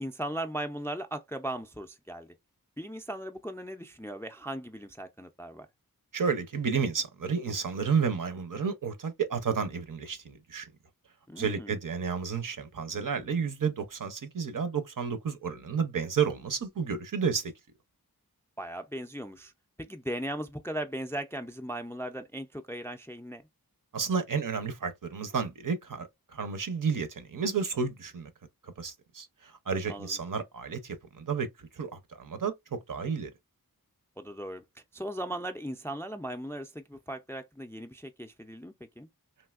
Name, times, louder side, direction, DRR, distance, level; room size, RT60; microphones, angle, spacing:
voice 1, 0.0-2.3 2.8-5.7 11.3-11.7 18.6-19.5 19.9-23.4 29.9-30.1 34.2-34.6 34.9-39.1, right 1 dB, 5° left, 0.3 m, -38 dB
voice 2, 6.1-10.7 11.4-17.5 23.9-28.3 28.6-33.3, right 6 dB, 60° right, 0.6 m, -31 dB
3.2 x 2.7 x 2.3 m
wide cardioid pair, 55°, 37 cm